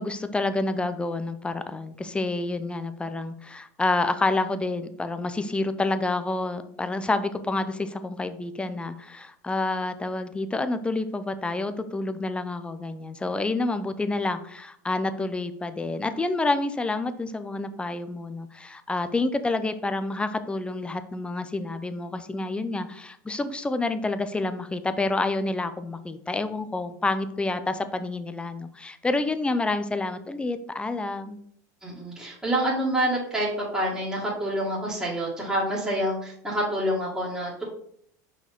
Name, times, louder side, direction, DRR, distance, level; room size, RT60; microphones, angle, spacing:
voice 1, 0.0-31.4, left 2 dB, 10° left, 11 dB, 0.6 m, -28 dB
voice 2, 31.8-37.6, right 1 dB, 5° right, -7 dB, 2.2 m, -27 dB
5.7 x 4.7 x 3.7 m, 0.66 s
hypercardioid pair, 100°, 10 cm